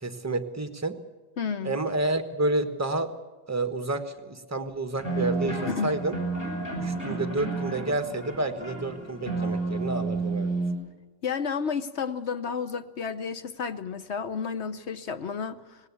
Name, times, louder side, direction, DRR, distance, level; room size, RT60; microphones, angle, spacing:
voice 1, 0.0-0.9 1.6-3.1 3.5-6.2 6.8-10.5, right 2 dB, 10° right, 8 dB, 1.0 m, -29 dB
voice 2, 1.4-1.8 5.2-5.3 5.7-6.0 11.2-15.8, left 6 dB, 50° left, 12 dB, 0.9 m, -31 dB
sound 1, 5.0-10.7, right 3 dB, 15° left, 5.9 m, -31 dB
19.0 x 17.5 x 8.4 m, 1.2 s
omnidirectional pair, 1.9 m